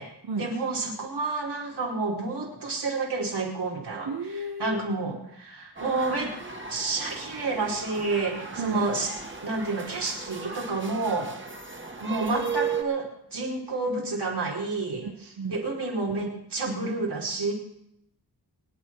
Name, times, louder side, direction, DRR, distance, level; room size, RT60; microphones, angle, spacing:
voice 1, 0.3-4.1 4.6-6.3 6.7-9.1 9.4-11.3 12.0-15.1 15.5-17.5, right 3 dB, 85° right, -3 dB, 4.9 m, -29 dB
voice 2, 4.0-4.8 8.6-8.9 15.0-15.1 15.4-15.6, right 2 dB, 70° right, 3 dB, 1.4 m, -32 dB
sound 1, 5.8-12.8, right 6 dB, 30° right, 1.5 m, -36 dB
25.5 x 10.5 x 4.7 m, 0.80 s
wide cardioid pair, 135°, 39 cm